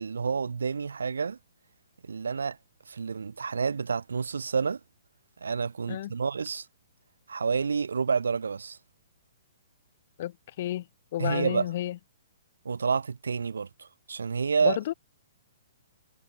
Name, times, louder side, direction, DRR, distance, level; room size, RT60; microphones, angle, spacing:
voice 1, 0.0-1.4 2.0-2.6 2.9-4.8 5.4-6.7 7.3-8.8 11.2-11.7 12.6-14.8, right 5 dB, 70° right, 2.3 m, -29 dB
voice 2, 10.2-10.9 11.1-12.0 14.6-14.9, left 13 dB, 45° left, 2.1 m, -31 dB
figure-of-eight pair, 120°, 0 cm